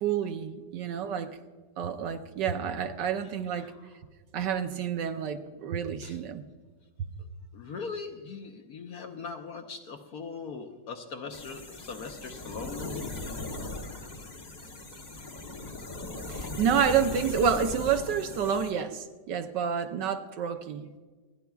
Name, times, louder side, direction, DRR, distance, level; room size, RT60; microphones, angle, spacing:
voice 1, 0.0-1.4 1.8-3.7 4.3-6.4 16.3-20.9, right 7 dB, 70° right, 7 dB, 1.2 m, -29 dB
voice 2, 7.5-13.1, left 5 dB, 60° left, 5 dB, 1.1 m, -40 dB
sound 1, 11.3-18.7, left 2 dB, 35° left, 0.7 m, -38 dB
28.5 x 10.5 x 2.3 m, 1.4 s
omnidirectional pair, 2.1 m